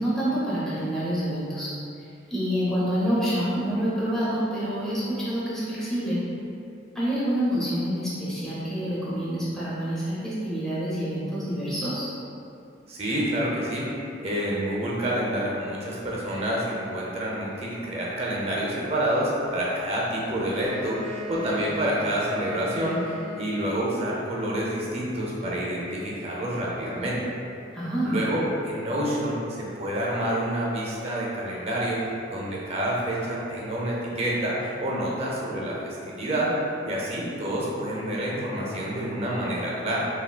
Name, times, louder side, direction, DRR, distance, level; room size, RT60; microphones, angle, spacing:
voice 1, 0.0-1.7 2.3-6.2 6.9-12.1 27.7-28.2, equal, 5° left, -10 dB, 0.7 m, -27 dB
voice 2, 12.9-13.9 14.2-27.2 28.0-32.0 32.3-36.5 36.8-40.1, right 1 dB, 35° right, -4 dB, 0.5 m, -28 dB
Wind instrument woodwind instrument, 20.4-24.1, left 3 dB, 40° left, 1.2 m, -38 dB
3.6 x 2.3 x 2.2 m, 2.6 s
head